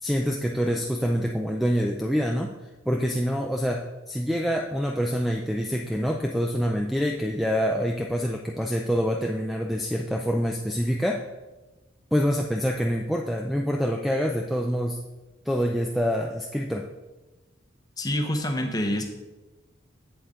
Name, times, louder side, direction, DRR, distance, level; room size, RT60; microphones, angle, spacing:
voice 1, 0.0-2.6 2.9-11.3 12.1-15.0 15.5-16.9, equal, ahead, 2 dB, 0.3 m, -26 dB
voice 2, 18.0-19.0, left 1 dB, 20° left, 3 dB, 0.9 m, -26 dB
7.9 x 7.7 x 3.7 m, 1.1 s
head